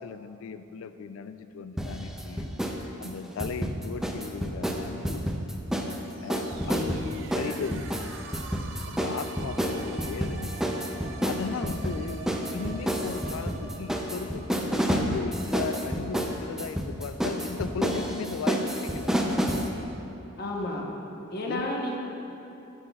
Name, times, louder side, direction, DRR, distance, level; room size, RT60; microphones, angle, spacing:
voice 1, 0.0-2.5 3.0-5.2 6.2-6.9 7.3-8.1 8.9-10.5 11.2-19.1 21.5-21.7, left 5 dB, 80° left, 11 dB, 0.3 m, -36 dB
sound 1, 1.8-2.8 3.0-6.0 6.3-19.7, equal, 5° right, 0.4 m, -29 dB
sound 2, 6.0-15.7, right 4 dB, 65° right, 0.5 m, -45 dB
voice 2, 6.6-7.1 20.4-20.9 21.3-22.0, left 1 dB, 50° left, 0 dB, 0.9 m, -32 dB
8.7 x 8.3 x 2.3 m, 2.9 s
head